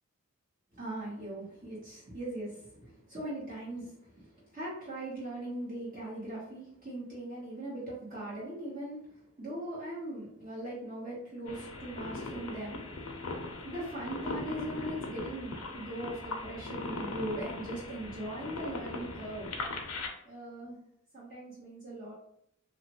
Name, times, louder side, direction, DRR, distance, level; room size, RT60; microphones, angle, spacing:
voice 1, 0.7-12.8 13.6-19.5 20.2-20.8 21.1-22.1, right 1 dB, 35° right, -8 dB, 0.9 m, -40 dB
sound 1, 11.5-20.1, left 2 dB, 80° left, 0.5 m, -40 dB
2.9 x 2.4 x 2.9 m, 0.73 s
head